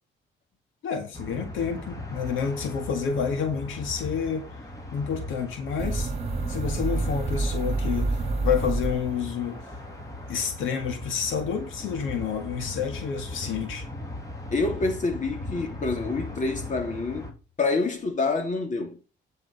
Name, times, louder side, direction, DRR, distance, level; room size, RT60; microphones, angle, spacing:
voice 1, 0.8-4.5 4.9-6.1 6.5-9.6 10.3-13.9, left 7 dB, 80° left, 2.0 m, -29 dB
sound 1, 1.1-17.3, left 1 dB, 15° left, 3.3 m, -39 dB
sound 2, 5.8-9.5, right 3 dB, 30° right, 2.0 m, -28 dB
voice 2, 14.5-19.0, left 3 dB, 40° left, 2.9 m, -27 dB
9.9 x 5.4 x 5.4 m
cardioid pair, 90°, 20 cm